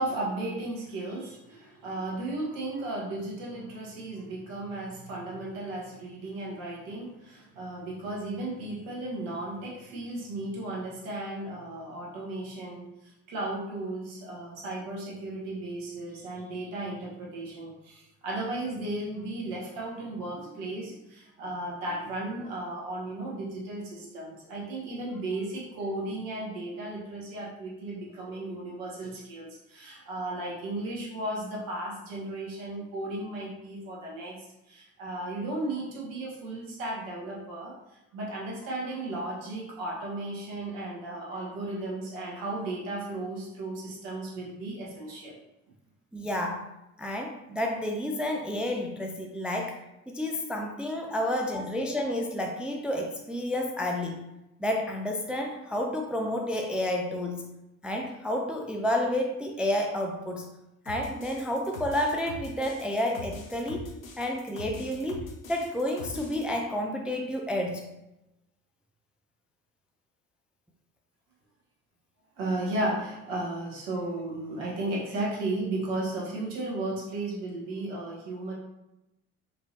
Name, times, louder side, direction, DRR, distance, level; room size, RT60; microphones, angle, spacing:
voice 1, 0.0-34.4 34.7-37.7 38.1-45.4 51.2-51.6 72.4-78.5, right 2 dB, 55° right, -4 dB, 1.3 m, -35 dB
voice 2, 46.1-46.6 47.0-49.8 50.1-54.2 54.6-57.5 57.8-60.5 60.9-63.9 64.2-67.9, left 1 dB, 5° right, 2 dB, 0.3 m, -30 dB
sound 1, 60.9-66.4, left 3 dB, 85° left, 0.5 m, -43 dB
4.5 x 2.8 x 2.7 m, 0.93 s
figure-of-eight pair, 50°, 40 cm